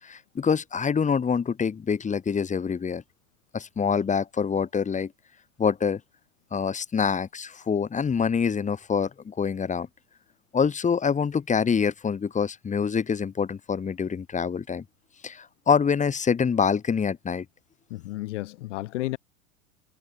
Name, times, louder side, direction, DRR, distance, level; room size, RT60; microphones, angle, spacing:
voice 1, 0.0-3.0 3.5-5.1 5.6-6.0 6.5-9.9 10.5-14.8 15.2-17.4, left 6 dB, 15° left, 4.7 m, -25 dB
voice 2, 17.9-19.2, left 17 dB, 55° left, 3.5 m, -32 dB
figure-of-eight pair, 95°, 43 cm